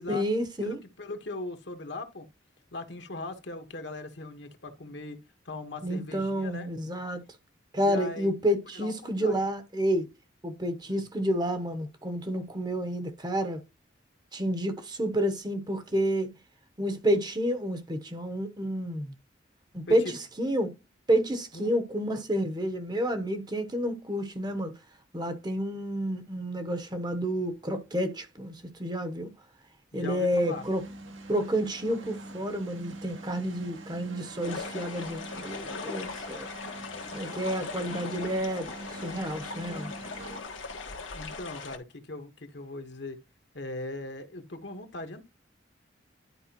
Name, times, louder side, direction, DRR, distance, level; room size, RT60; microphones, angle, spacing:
voice 1, 0.1-0.8 5.8-7.2 7.7-10.1 10.4-13.6 14.3-16.3 16.8-19.1 19.7-20.7 21.1-24.8 25.1-29.3 29.9-30.8 31.3-36.5 37.1-39.9, equal, 20° right, 0.9 m, -30 dB
voice 2, 0.6-2.3 2.7-5.2 5.4-6.7 7.8-9.4 10.9-11.0 19.9-20.1 21.5-21.7 29.9-30.6 41.1-43.2 43.5-45.2, left 2 dB, 65° left, 1.3 m, -39 dB
sound 1, 30.3-40.4, right 1 dB, 85° right, 1.7 m, -44 dB
sound 2, 34.4-41.8, left 4 dB, 85° left, 1.6 m, -39 dB
11.0 x 4.8 x 2.9 m
head